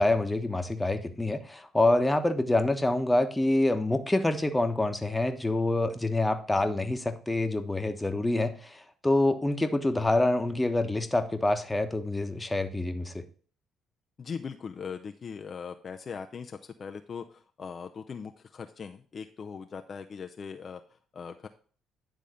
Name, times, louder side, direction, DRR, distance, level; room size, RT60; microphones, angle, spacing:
voice 1, 0.0-13.2, left 2 dB, 15° left, 7 dB, 1.2 m, -26 dB
voice 2, 14.2-21.5, left 6 dB, 45° left, 6 dB, 0.6 m, -40 dB
10.5 x 3.7 x 5.2 m, 0.43 s
hypercardioid pair, 55°, 0 cm